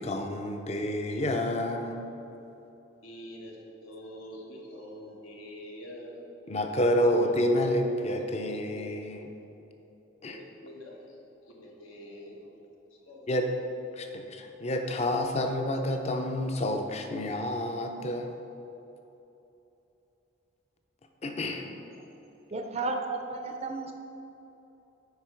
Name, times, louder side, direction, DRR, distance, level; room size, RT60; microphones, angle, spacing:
voice 1, 0.0-2.1 6.5-9.3 10.2-10.4 13.3-13.4 14.0-18.4 21.2-21.7, left 1 dB, 30° left, 5 dB, 0.5 m, -29 dB
voice 2, 3.0-6.2 10.1-12.5 12.9-13.3, equal, 85° left, -1 dB, 1.3 m, -46 dB
voice 3, 22.5-23.9, right 3 dB, 30° right, 4 dB, 0.4 m, -33 dB
8.1 x 5.0 x 4.5 m, 2.9 s
head